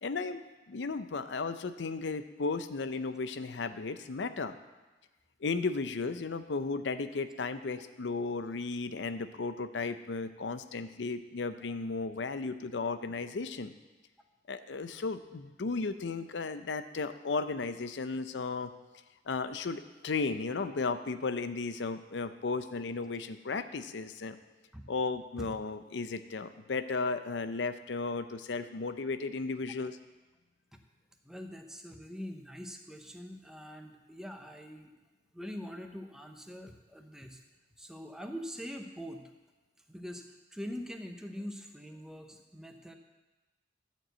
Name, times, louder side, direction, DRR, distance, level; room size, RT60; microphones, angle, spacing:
voice 1, 0.0-4.5 5.4-13.7 14.5-18.7 19.3-24.4 24.9-30.0, left 4 dB, 80° left, 11 dB, 0.6 m, -35 dB
voice 2, 31.2-34.9 35.3-37.4 37.8-39.2 39.9-40.3 40.5-42.9, equal, 5° right, 4 dB, 0.7 m, -43 dB
11.5 x 4.6 x 7.9 m, 1.2 s
head